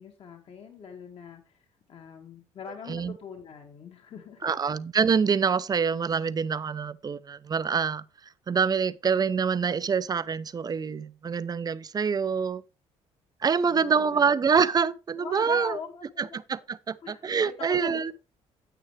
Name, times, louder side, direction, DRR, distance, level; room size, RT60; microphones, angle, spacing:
voice 1, 0.0-4.6 13.6-14.5 15.2-16.4 17.0-18.1, left 6 dB, 55° left, 1.8 m, -42 dB
voice 2, 4.4-8.0 8.5-12.6 13.4-15.8 16.5-18.1, right 6 dB, 35° right, 0.6 m, -26 dB
9.1 x 8.7 x 3.2 m
cardioid pair, 95°, 12 cm